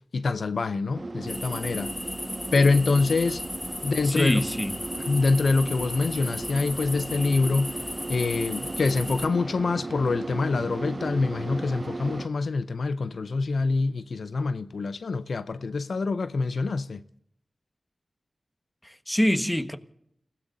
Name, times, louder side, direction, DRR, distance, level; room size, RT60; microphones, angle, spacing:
voice 1, 0.1-1.9 2.5-3.4 3.8-4.4 5.1-7.8 8.1-17.0, left 3 dB, 85° left, 0.5 m, -25 dB
sound 1, 0.9-12.3, right 2 dB, 45° right, 0.6 m, -36 dB
sound 2, 1.3-9.3, left 1 dB, 30° left, 1.5 m, -36 dB
voice 2, 4.0-4.8 18.8-19.8, equal, 15° left, 1.3 m, -25 dB
30.0 x 17.0 x 2.6 m
cardioid pair, 40°, 0 cm